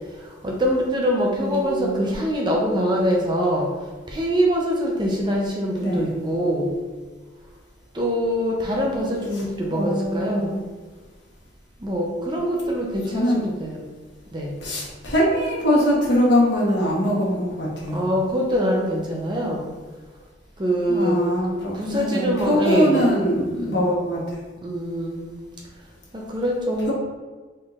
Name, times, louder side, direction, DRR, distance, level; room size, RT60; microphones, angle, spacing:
voice 1, 0.2-3.7 4.1-6.7 7.9-10.6 11.8-13.9 14.3-14.5 17.9-19.7 20.6-21.2 21.7-23.1 23.5-23.8 24.6-25.4 26.1-26.9, equal, 25° right, -1 dB, 0.5 m, -24 dB
voice 2, 1.3-2.0 5.8-6.1 9.7-10.6 13.1-13.5 14.6-18.0 20.9-24.4, equal, 65° left, -4 dB, 1.2 m, -22 dB
4.3 x 3.6 x 2.4 m, 1.4 s
head